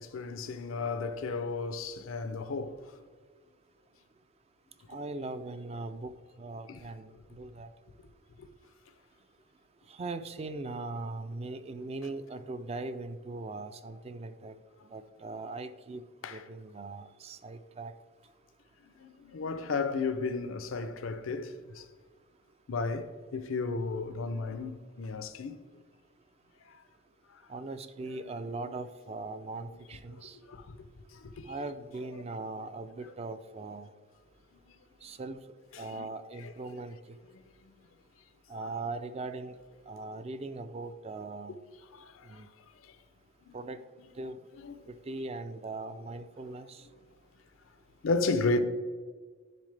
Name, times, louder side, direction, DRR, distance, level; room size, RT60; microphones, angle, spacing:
voice 1, 0.0-2.8 6.7-6.8 8.4-8.5 16.2-16.4 19.0-21.8 22.7-25.6 28.0-28.3 30.1-30.2 30.5-30.6 31.1-31.6 33.0-33.1 35.7-36.1 36.4-36.5 38.6-38.7 41.9-42.4 43.5-43.6 44.6-44.8 48.0-48.6, left 3 dB, 80° left, 0.5 m, -34 dB
voice 2, 4.9-6.1 6.4-7.7 10.0-14.5 14.9-16.0 16.3-17.9 27.5-30.4 31.5-33.9 35.0-35.4 35.8-37.0 38.5-39.6 39.9-41.6 42.3-42.5 43.5-43.8 44.2-44.4 44.9-46.8, right 3 dB, 30° right, 0.3 m, -40 dB
9.9 x 3.7 x 3.3 m
head